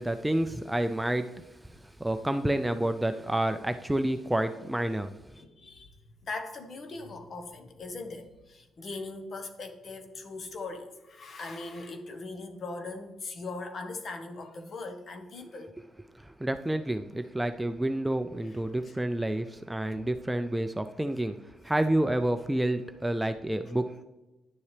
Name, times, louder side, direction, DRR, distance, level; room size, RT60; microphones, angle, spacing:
voice 1, 0.0-5.1 16.1-24.0, right 1 dB, 10° right, 8 dB, 0.4 m, -29 dB
voice 2, 5.4-5.9 6.2-15.8 16.5-16.6 18.9-19.0, left 3 dB, 50° left, 6 dB, 1.2 m, -40 dB
10.5 x 7.1 x 3.3 m, 1.1 s
cardioid pair, 90°, 0 cm